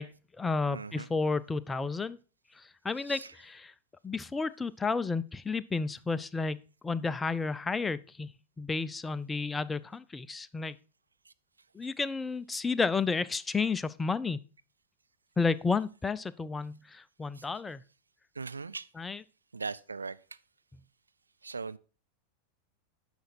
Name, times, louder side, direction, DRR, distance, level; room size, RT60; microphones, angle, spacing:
voice 1, 0.0-2.2 2.5-3.7 4.0-10.8 11.7-14.4 15.4-17.8 18.9-19.2, left 4 dB, 10° left, 0.4 m, -32 dB
voice 2, 0.7-1.1 3.1-3.2 18.4-18.9 19.5-20.2 21.4-21.8, right 4 dB, 75° right, 0.4 m, -38 dB
10.5 x 6.2 x 4.3 m
figure-of-eight pair, 90°, 0 cm